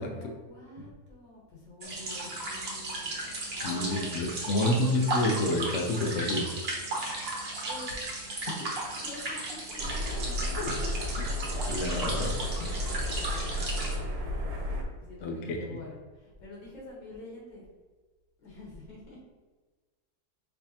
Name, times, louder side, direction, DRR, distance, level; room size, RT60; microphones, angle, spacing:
voice 1, 0.0-3.2 3.5-5.0 7.6-7.9 8.8-11.1 11.8-14.5 14.9-17.6 18.4-19.2, left 3 dB, 85° left, -4 dB, 2.1 m, -46 dB
sound 1, 1.8-14.0, right 2 dB, 45° right, 1.0 m, -35 dB
voice 2, 3.6-6.5 8.5-8.8 11.7-12.3 15.2-15.8, left 1 dB, 65° left, 3 dB, 0.7 m, -29 dB
sound 2, 9.8-14.8, left 1 dB, 70° right, 1.3 m, -33 dB
5.5 x 3.4 x 2.8 m, 1.3 s
omnidirectional pair, 1.9 m